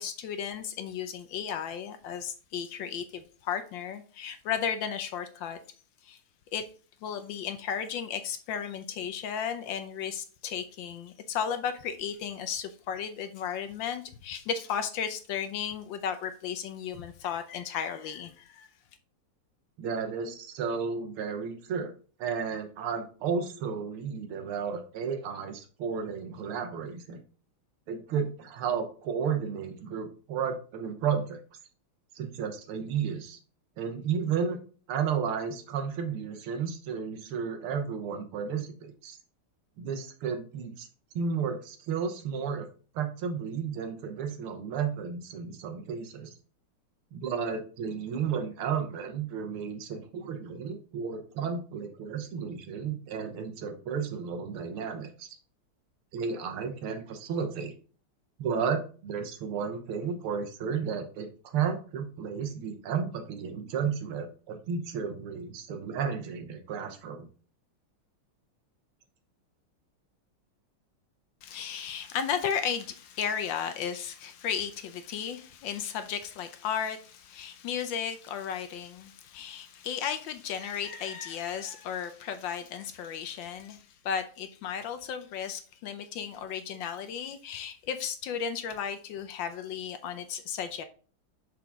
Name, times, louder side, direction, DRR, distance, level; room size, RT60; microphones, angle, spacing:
voice 1, 0.0-5.6 6.0-6.2 6.5-6.6 7.0-18.7 71.4-90.8, left 8 dB, 70° left, 1.2 m, -34 dB
voice 2, 19.8-21.9 22.2-27.2 27.9-31.4 32.1-33.4 33.8-34.6 34.9-39.2 39.8-40.9 41.2-42.7 42.9-46.3 47.1-55.3 56.1-57.7 58.4-67.3, right 6 dB, 80° right, 1.9 m, -33 dB
6.0 x 4.9 x 3.5 m
omnidirectional pair, 2.3 m